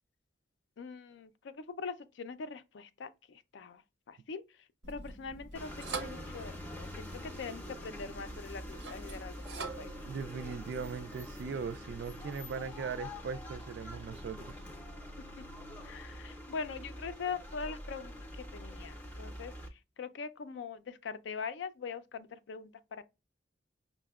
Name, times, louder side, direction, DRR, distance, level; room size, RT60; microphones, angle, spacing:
voice 1, 0.8-3.8 4.1-4.4 4.9-9.9 15.8-23.0, left 5 dB, 75° left, 0.4 m, -42 dB
sound 1, 4.8-12.2, right 3 dB, 85° right, 0.7 m, -46 dB
sound 2, 5.5-19.7, left 1 dB, 10° left, 0.5 m, -45 dB
voice 2, 10.0-14.6, right 5 dB, 65° right, 0.3 m, -39 dB
5.6 x 2.1 x 2.3 m
head